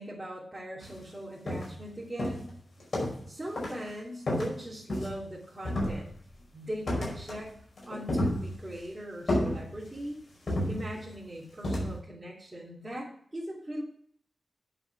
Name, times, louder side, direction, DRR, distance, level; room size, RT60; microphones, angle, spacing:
voice 1, 0.0-2.4 3.3-6.1 6.5-7.5 7.9-10.2 10.7-13.8, equal, 20° right, -7 dB, 2.9 m, -40 dB
sound 1, 0.8-1.0 1.5-1.9 2.2-3.3 3.6-3.9 4.3-5.3 5.6-6.4 6.9-7.5 7.8-8.8 9.3-10.0 10.5-11.2 11.6-12.0, left 1 dB, 55° left, 5.1 m, -31 dB
10.0 x 6.7 x 6.1 m, 0.62 s
wide cardioid pair, 100°, 0 cm